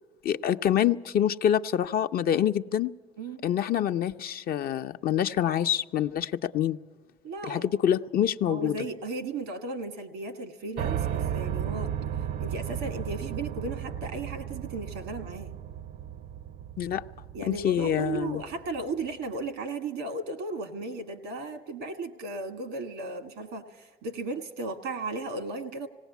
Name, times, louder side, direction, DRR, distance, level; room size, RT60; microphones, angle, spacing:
voice 1, 0.2-2.9 3.4-6.8 7.5-8.8 16.8-17.0 17.5-18.4, left 10 dB, 60° left, 9 dB, 0.6 m, -26 dB
voice 2, 7.2-7.8 8.5-11.9 12.4-15.5 17.3-25.9, right 3 dB, 85° right, 9 dB, 1.6 m, -35 dB
Piano, 10.8-18.8, right 9 dB, 65° right, 0.6 m, -34 dB
19.0 x 17.0 x 8.3 m, 1.2 s
supercardioid pair, 65°, 17 cm